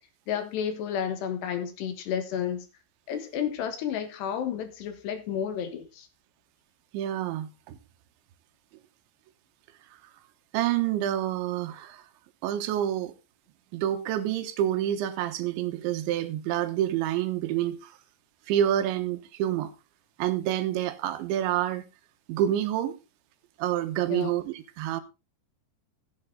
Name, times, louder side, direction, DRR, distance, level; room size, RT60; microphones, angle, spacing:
voice 1, 0.3-2.7 3.1-6.1 24.1-24.3, left 8 dB, 70° left, 3.5 m, -31 dB
voice 2, 6.9-7.8 10.5-12.0 12.4-13.1 13.7-17.9 18.5-19.7 20.2-21.8 22.3-23.0 23.6-25.0, right 11 dB, 85° right, 3.4 m, -28 dB
14.5 x 8.7 x 3.8 m
omnidirectional pair, 5.2 m